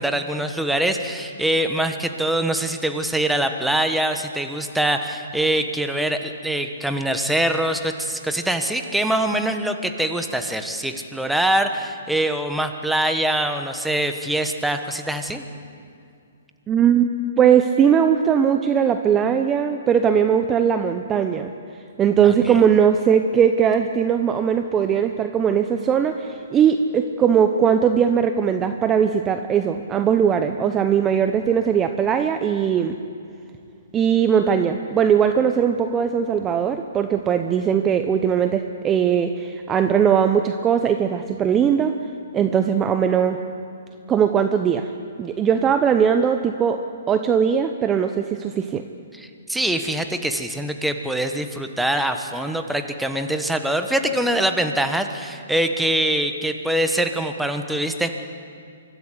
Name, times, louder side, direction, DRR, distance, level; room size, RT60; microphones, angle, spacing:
voice 1, 0.0-15.4 22.2-22.6 49.1-58.1, right 1 dB, 5° right, 6 dB, 1.3 m, -24 dB
voice 2, 16.7-17.1 17.4-21.5 22.0-33.0 33.9-41.9 42.3-43.4 44.1-44.9 45.2-46.8 47.1-48.8, right 8 dB, 20° right, 7 dB, 0.8 m, -19 dB
24.5 x 14.0 x 8.2 m, 2.4 s
hypercardioid pair, 130°, 0 cm